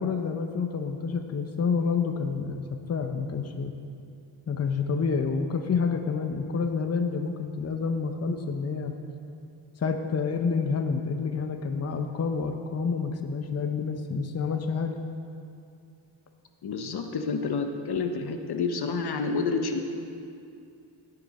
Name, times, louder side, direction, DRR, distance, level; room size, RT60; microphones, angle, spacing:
voice 1, 0.0-2.6 2.9-3.7 4.5-8.9 9.8-15.0, left 5 dB, 35° left, 6 dB, 0.7 m, -28 dB
voice 2, 16.6-19.8, left 4 dB, 65° left, 6 dB, 0.9 m, -29 dB
17.0 x 6.7 x 4.2 m, 2.5 s
cardioid pair, 90°, 42 cm